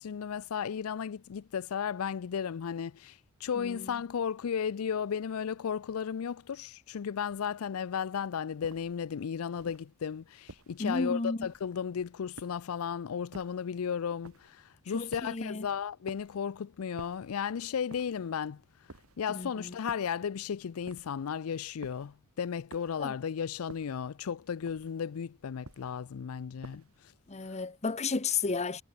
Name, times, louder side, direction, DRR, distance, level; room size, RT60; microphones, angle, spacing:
voice 1, 0.0-18.6 19.2-26.8, left 7 dB, 85° left, 0.4 m, -34 dB
voice 2, 3.5-3.9 10.8-11.5 14.9-15.7 19.3-19.7 23.0-23.1 27.3-28.8, left 4 dB, 30° left, 0.9 m, -33 dB
sound 1, 8.6-9.0 9.6-9.9 10.5-10.9 11.4-11.8 12.4-12.8 13.3-13.7 14.2-14.6 15.1-15.5 16.1-16.4 17.0-17.4 17.9-18.3 18.9-19.3 19.9-20.3 20.9-21.3 21.8-22.2 22.7-23.1 23.7-24.1 24.7-25.1 25.6-26.1 26.6-27.1, right 2 dB, 90° right, 2.3 m, -51 dB
head